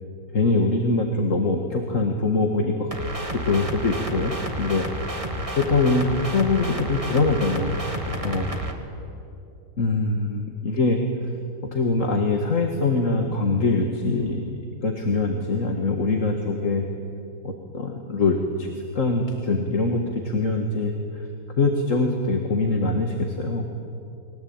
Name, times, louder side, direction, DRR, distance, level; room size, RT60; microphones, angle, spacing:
voice 1, 0.3-2.9 3.3-4.9 5.6-7.8 8.2-8.5 9.8-11.0 11.6-16.9 17.4-18.7 18.9-21.3 21.6-23.6, left 3 dB, 40° left, 3 dB, 2.0 m, -23 dB
sound 1, 2.9-8.7, right 1 dB, 15° right, 2.1 m, -31 dB
30.0 x 22.0 x 8.9 m, 2.7 s
omnidirectional pair, 2.2 m